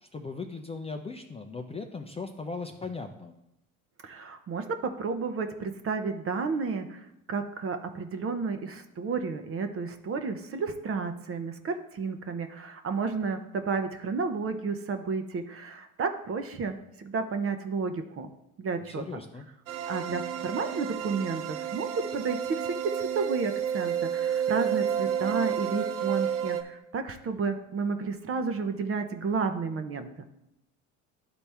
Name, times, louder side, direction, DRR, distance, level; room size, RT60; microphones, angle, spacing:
voice 1, 0.0-3.3 18.9-19.5, left 4 dB, 15° left, 4 dB, 0.5 m, -38 dB
voice 2, 4.0-7.0 7.3-18.3 18.6-19.2 19.9-30.1, right 4 dB, 35° right, 8 dB, 0.8 m, -32 dB
sound 1, 19.7-26.6, right 9 dB, 75° right, 0.8 m, -31 dB
11.5 x 4.1 x 3.4 m, 0.84 s
hypercardioid pair, 85°, 41 cm